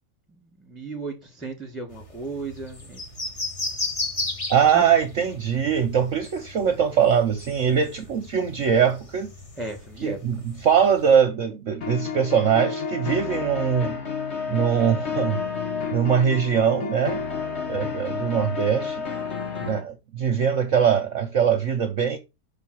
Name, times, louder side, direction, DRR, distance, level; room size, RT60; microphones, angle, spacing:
voice 1, 0.6-3.0 4.7-4.8 9.6-10.2, right 3 dB, ahead, 1.4 m, -34 dB
sound 1, 1.9-11.2, left 2 dB, 25° left, 0.8 m, -36 dB
voice 2, 4.5-9.3 10.0-14.0 14.5-15.4 15.9-17.2 17.7-19.1 19.6-22.2, right 7 dB, 60° right, 0.9 m, -22 dB
sound 2, 11.8-19.8, left 5 dB, 45° left, 1.4 m, -30 dB
5.8 x 4.3 x 5.9 m
omnidirectional pair, 1.8 m